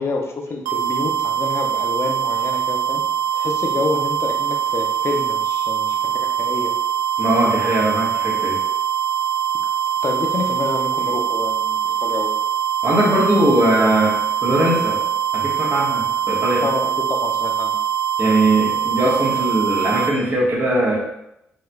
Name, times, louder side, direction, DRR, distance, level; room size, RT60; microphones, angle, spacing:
voice 1, 0.0-3.0 3.3-6.7 10.0-12.3 16.6-17.8, left 3 dB, 45° left, 3 dB, 0.6 m, -27 dB
sound 1, 0.7-20.1, right 9 dB, 80° right, 0.4 m, -22 dB
voice 2, 7.2-8.6 12.8-15.0 15.3-16.6 18.2-21.0, right 1 dB, 35° right, -5 dB, 1.4 m, -20 dB
4.7 x 2.9 x 2.3 m, 0.82 s
hypercardioid pair, 45°, 6 cm